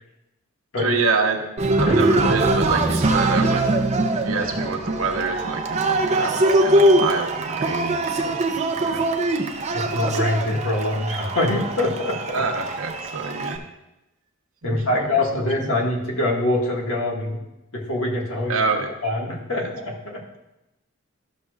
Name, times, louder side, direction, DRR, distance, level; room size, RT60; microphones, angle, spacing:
voice 1, 0.8-1.4 1.8-3.7 4.1-8.4 8.8-9.1 12.3-13.6 14.6-15.8 18.5-18.9 19.5-19.6, right 4 dB, 75° right, 3 dB, 1.0 m, -27 dB
Cheering, 1.6-13.6, right 2 dB, 30° right, 0.5 m, -22 dB
voice 2, 1.8-2.3 9.7-12.4 14.6-17.4 17.7-18.6 19.0-20.2, left 1 dB, 65° left, -1 dB, 1.7 m, -24 dB
12.5 x 6.5 x 2.4 m, 0.94 s
head